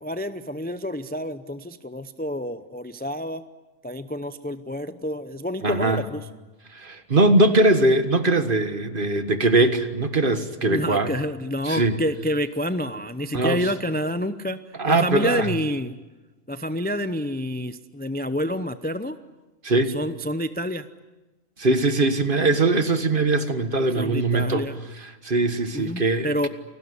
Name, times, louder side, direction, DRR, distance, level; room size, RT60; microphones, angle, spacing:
voice 1, 0.0-3.4 3.8-6.3 10.6-14.6 14.9-16.0 16.5-19.2 19.9-20.9 24.0-24.8 25.7-26.5, equal, 10° left, 11 dB, 0.5 m, -28 dB
voice 2, 5.6-6.0 6.7-11.1 11.6-12.0 13.3-13.6 14.8-15.5 19.6-20.0 21.6-24.6 25.2-26.5, right 2 dB, 40° right, 9 dB, 1.7 m, -21 dB
28.5 x 19.0 x 9.8 m, 1.2 s
omnidirectional pair, 1.4 m